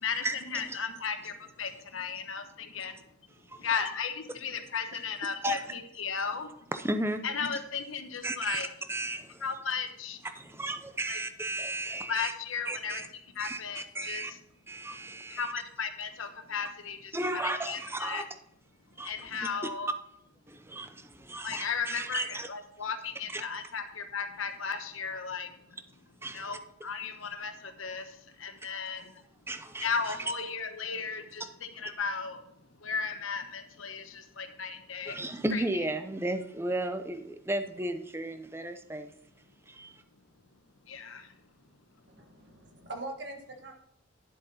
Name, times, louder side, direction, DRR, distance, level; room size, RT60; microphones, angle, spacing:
voice 1, 0.0-2.9 3.6-6.5 7.2-8.7 9.4-10.2 11.1-11.2 12.1-13.0 13.4-14.4 15.3-18.3 19.0-19.9 21.4-25.5 26.3-28.1 28.4-29.1 29.8-32.4 32.8-35.2 35.5-35.9 40.9-41.3, left 6 dB, 85° left, 1.1 m, -35 dB
voice 2, 6.7-7.2 8.2-9.4 10.4-12.3 12.7-13.1 13.4-14.3 14.7-15.5 17.1-18.2 19.0-19.5 20.5-22.5 23.3-23.4 26.2-26.5 29.5-29.9 35.1-39.1 39.7-39.9, right 1 dB, 10° right, 0.6 m, -34 dB
voice 3, 42.1-43.7, right 2 dB, 60° right, 1.5 m, -42 dB
10.0 x 7.6 x 4.2 m
head